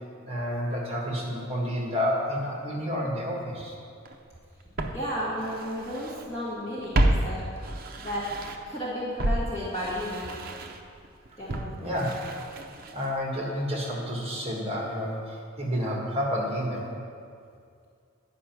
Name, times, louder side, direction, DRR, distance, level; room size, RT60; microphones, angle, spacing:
voice 1, 0.2-3.8 11.8-12.1 12.9-16.9, equal, 30° right, -2 dB, 1.4 m, -30 dB
Walk footsteps, 4.1-4.2 4.8-6.3 6.5-8.8 9.2-13.2 13.5-13.6, right 1 dB, 45° right, 0.6 m, -30 dB
voice 2, 4.9-7.4 8.0-8.3 8.7-10.4 11.4-12.0, equal, 30° left, -9 dB, 1.8 m, -33 dB
9.8 x 5.3 x 5.9 m, 2.3 s
head